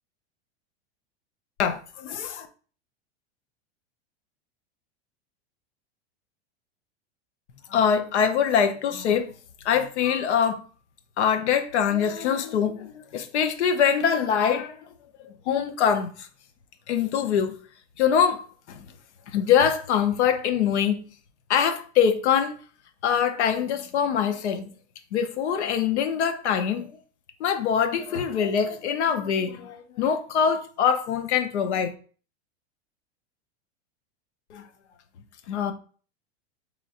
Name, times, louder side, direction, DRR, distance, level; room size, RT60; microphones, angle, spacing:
voice 1, 1.6-2.5 7.7-9.3 9.6-10.6 11.2-14.8 15.2-16.3 16.9-17.5 18.0-18.9 19.3-21.0 21.5-22.5 23.0-24.7 25.1-26.9 27.4-31.9 34.5-34.6 35.5-35.7, left 7 dB, 90° left, 0.6 m, -24 dB
3.9 x 3.0 x 2.4 m
supercardioid pair, 120°, 33 cm